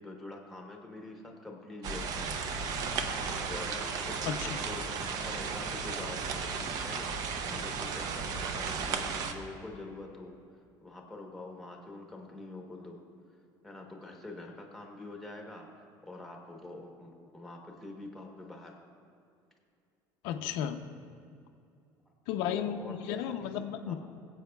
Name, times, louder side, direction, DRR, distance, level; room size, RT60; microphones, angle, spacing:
voice 1, 0.0-2.4 3.1-6.2 6.5-10.3 10.8-13.0 13.6-15.7 16.0-18.7 22.4-23.5 23.9-24.0, left 2 dB, ahead, 1 dB, 1.0 m, -45 dB
sound 1, 1.8-9.3, right 5 dB, 45° right, 0.6 m, -34 dB
voice 2, 4.2-4.6 20.2-20.8 22.3-23.9, left 9 dB, 80° left, 6 dB, 0.6 m, -34 dB
21.5 x 7.9 x 2.3 m, 2.5 s
cardioid pair, 170°, 9 cm